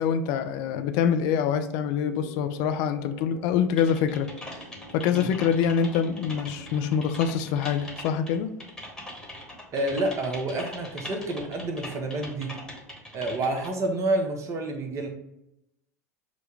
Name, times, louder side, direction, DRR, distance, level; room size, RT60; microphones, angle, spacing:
voice 1, 0.0-4.3 4.9-8.5, left 7 dB, 50° left, 9 dB, 0.4 m, -25 dB
sound 1, 2.0-7.9, equal, 75° left, 0.9 m, -47 dB
Typing, 3.8-13.7, left 1 dB, 5° left, 1.2 m, -42 dB
voice 2, 9.7-12.6 13.1-15.1, right 2 dB, 30° right, 4 dB, 0.9 m, -29 dB
6.2 x 2.2 x 3.2 m, 0.83 s
figure-of-eight pair, 80°, 9 cm